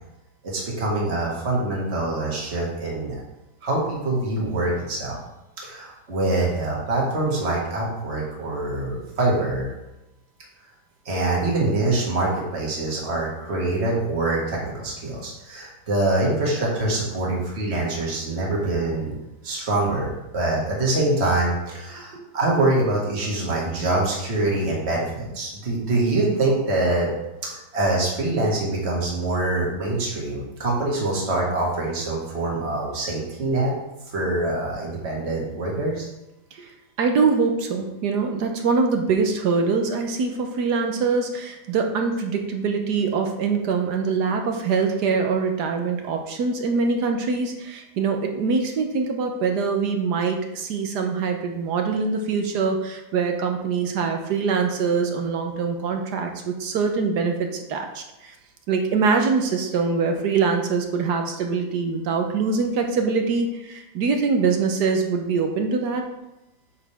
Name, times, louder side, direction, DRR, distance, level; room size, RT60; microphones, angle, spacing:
voice 1, 0.4-3.2 3.6-5.2 5.6-9.7 11.1-19.1 19.4-20.1 20.3-27.1 27.5-33.7 34.1-36.1, right 2 dB, 35° right, -3 dB, 2.1 m, -24 dB
voice 2, 37.0-58.3 58.7-66.0, right 5 dB, 65° right, 4 dB, 1.3 m, -23 dB
8.5 x 6.3 x 3.5 m, 0.95 s
omnidirectional pair, 2.0 m